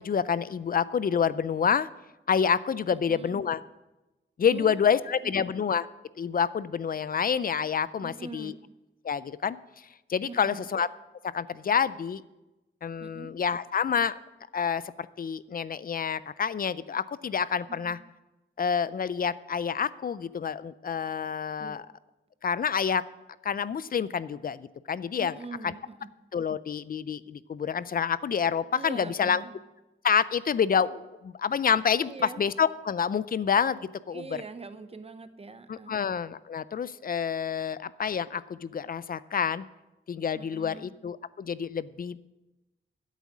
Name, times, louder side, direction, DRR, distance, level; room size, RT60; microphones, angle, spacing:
voice 1, 0.0-1.9 2.3-3.6 4.4-5.8 6.2-8.5 9.0-9.6 10.1-10.9 11.3-12.2 12.8-14.2 14.5-18.0 18.6-21.8 22.4-23.0 23.4-25.3 26.3-29.4 30.0-32.1 32.4-34.2 35.7-39.6 40.1-42.3, left 7 dB, 45° left, 17 dB, 0.4 m, -28 dB
voice 2, 3.0-3.4 4.5-5.5 8.0-8.6 10.2-10.7 13.0-13.4 17.7-17.9 21.6-21.8 25.2-26.1 28.7-29.5 32.0-32.5 34.1-36.0 40.3-40.9, right 3 dB, 30° right, 10 dB, 0.7 m, -43 dB
12.5 x 8.2 x 6.1 m, 1.0 s
wide cardioid pair, 170°, 21 cm